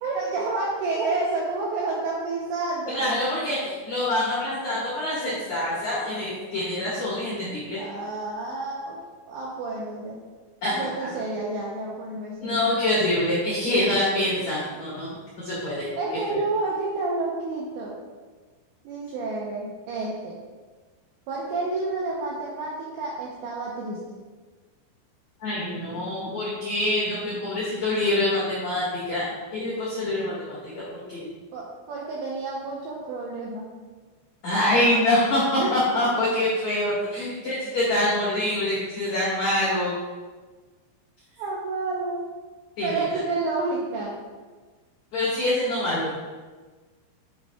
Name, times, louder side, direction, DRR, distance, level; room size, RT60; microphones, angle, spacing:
voice 1, 0.0-3.1 7.7-9.0 9.3-10.2 10.7-12.5 13.7-13.8 16.0-18.0 18.8-20.3 21.3-24.0 31.5-33.7 35.6-35.7 41.4-42.3 42.8-44.2, right 3 dB, 80° right, -3 dB, 2.5 m, -29 dB
voice 2, 2.9-7.8 10.6-11.1 12.4-15.1 15.4-15.9 16.3-16.4 25.4-31.3 34.4-39.9 42.8-43.0 45.1-46.1, left 1 dB, 85° left, -9 dB, 1.5 m, -25 dB
11.0 x 5.5 x 2.3 m, 1.4 s
omnidirectional pair, 6.0 m